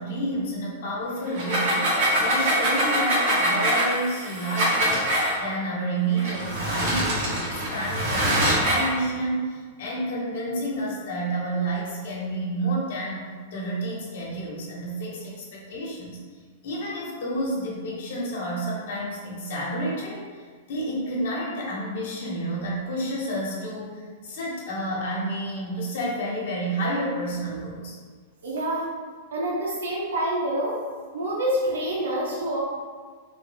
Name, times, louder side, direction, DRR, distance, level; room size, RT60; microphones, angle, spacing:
voice 1, 0.0-5.1 5.4-13.2 13.5-16.2 16.6-28.0, right 1 dB, 70° left, -4 dB, 1.1 m, -30 dB
sound 1, 1.3-5.3 6.2-8.9, right 1 dB, 55° right, 1.3 m, -24 dB
voice 2, 28.4-28.9 29.3-30.7 31.1-32.6, right 1 dB, 90° right, -5 dB, 0.8 m, -27 dB
3.4 x 2.6 x 3.5 m, 1.5 s
hypercardioid pair, 135°, 0 cm